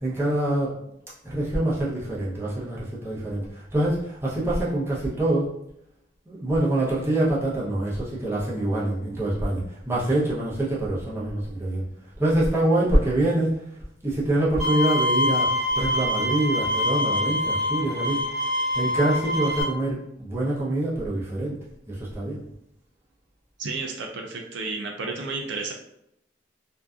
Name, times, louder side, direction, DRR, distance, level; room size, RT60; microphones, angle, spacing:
voice 1, 0.0-0.8 1.2-5.5 6.3-11.8 12.2-13.7 14.0-15.5 15.7-21.6 21.9-22.4, right 1 dB, 15° right, -8 dB, 0.7 m, -25 dB
Bowed string instrument, 14.6-19.6, left 1 dB, 5° left, 1.0 m, -25 dB
voice 2, 23.6-25.7, right 3 dB, 65° right, 1 dB, 0.3 m, -32 dB
2.6 x 2.3 x 2.3 m, 0.78 s
head